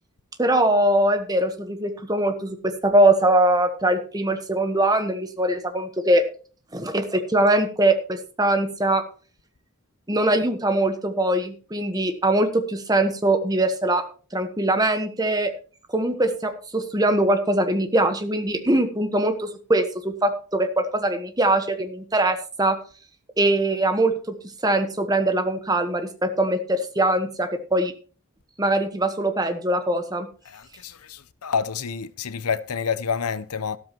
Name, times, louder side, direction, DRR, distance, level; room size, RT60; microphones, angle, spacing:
voice 1, 0.4-6.2 6.7-9.0 10.1-14.0 14.3-15.5 15.9-22.8 23.4-24.1 24.6-27.9 28.6-30.3, right 1 dB, 15° right, 1.2 m, -22 dB
voice 2, 30.5-33.8, left 6 dB, 85° left, 0.8 m, -28 dB
13.5 x 13.0 x 3.0 m
head